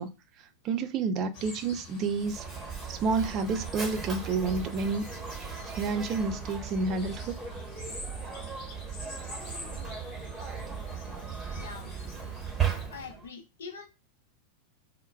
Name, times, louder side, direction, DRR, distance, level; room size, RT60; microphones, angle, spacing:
voice 1, 0.0-2.5 2.8-5.1 5.6-7.4, right 4 dB, 35° right, 0.3 m, -30 dB
sound 1, 1.3-12.9, left 3 dB, 40° left, 1.2 m, -47 dB
Mechanisms, 2.2-13.3, right 7 dB, 15° right, 1.0 m, -37 dB
voice 2, 11.5-11.9 12.9-13.9, left 5 dB, 65° left, 0.7 m, -43 dB
2.1 x 2.0 x 3.2 m
figure-of-eight pair, 90°, 0 cm